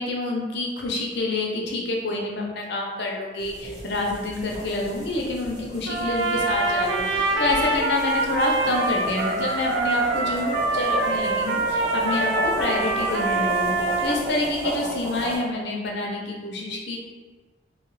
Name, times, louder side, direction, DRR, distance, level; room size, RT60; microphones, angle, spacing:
voice 1, 0.0-13.8 14.0-17.0, left 2 dB, 65° left, -1 dB, 0.6 m, -28 dB
sound 1, 3.4-15.4, equal, 30° right, 1.5 m, -34 dB
Trumpet, 5.8-14.2, right 2 dB, 85° right, 0.4 m, -25 dB
2.6 x 2.4 x 3.1 m, 1.3 s
head